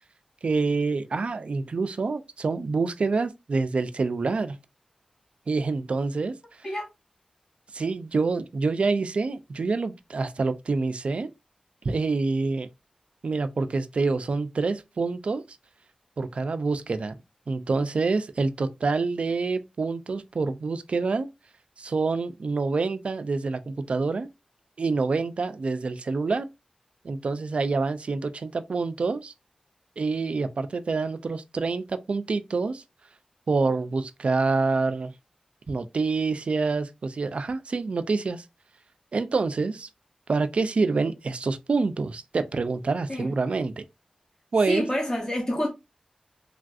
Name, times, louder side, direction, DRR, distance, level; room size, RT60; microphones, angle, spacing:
voice 1, 0.4-4.6 5.5-6.4 7.7-11.3 11.8-12.7 13.2-15.4 16.2-17.2 17.5-21.3 21.8-24.3 24.8-26.5 27.0-29.3 30.0-32.8 33.5-35.1 35.7-38.4 39.1-39.9 40.3-43.8 44.5-44.9, right 4 dB, 55° right, 0.3 m, -27 dB
voice 2, 44.7-45.7, left 1 dB, 25° left, 0.7 m, -27 dB
3.3 x 2.4 x 2.3 m
wide cardioid pair, 100°, 2 cm